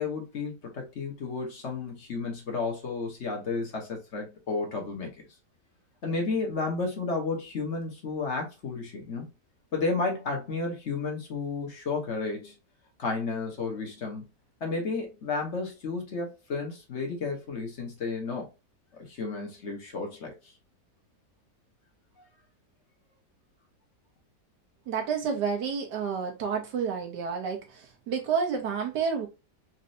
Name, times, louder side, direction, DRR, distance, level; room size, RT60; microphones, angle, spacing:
voice 1, 0.0-5.1 6.0-9.3 9.7-12.6 13.0-14.3 14.6-18.5 19.0-20.5, left 4 dB, 45° left, 1.2 m, -32 dB
voice 2, 24.9-29.3, right 6 dB, 80° right, 1.3 m, -30 dB
4.1 x 2.6 x 2.6 m
omnidirectional pair, 1.8 m